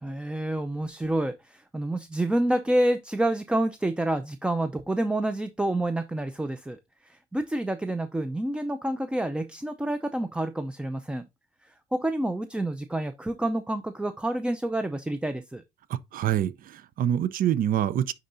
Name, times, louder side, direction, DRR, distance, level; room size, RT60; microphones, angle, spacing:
voice 1, 0.0-11.2 11.6-15.6, right 1 dB, 5° right, 0.5 m, -28 dB
voice 2, 15.9-18.1, right 10 dB, 55° right, 0.6 m, -26 dB
9.9 x 3.9 x 2.6 m
cardioid pair, 110°, 17 cm